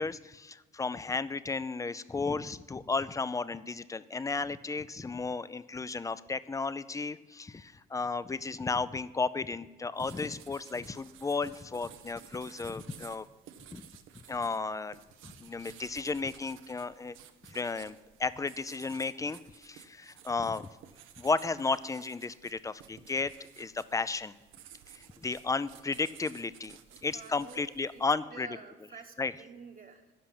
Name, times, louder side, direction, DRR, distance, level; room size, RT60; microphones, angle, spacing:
voice 1, 0.0-13.3 13.7-13.9 14.3-15.0 15.4-17.2 17.5-20.7 21.2-24.3 24.9-28.5 29.2-29.3, left 4 dB, 15° left, 16 dB, 0.4 m, -34 dB
sound 1, 10.0-28.1, right 10 dB, 90° right, 0.8 m, -55 dB
voice 2, 27.0-28.0 28.3-30.1, right 5 dB, 45° right, 2 dB, 1.2 m, -50 dB
10.5 x 5.9 x 8.5 m, 1.2 s
cardioid pair, 90°, 20 cm